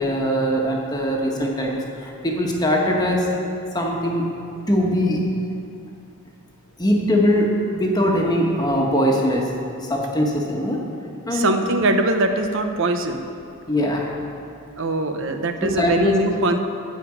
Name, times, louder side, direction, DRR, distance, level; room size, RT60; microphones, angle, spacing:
voice 1, 0.0-1.8 2.2-3.2 3.7-4.2 4.7-5.2 6.8-9.4 9.9-10.8 11.3-11.7 13.7-14.1 15.6-16.2, equal, 20° left, -1 dB, 1.4 m, -21 dB
voice 2, 11.3-13.2 14.8-16.6, right 2 dB, 60° right, 6 dB, 0.9 m, -22 dB
14.0 x 5.2 x 8.4 m, 2.5 s
head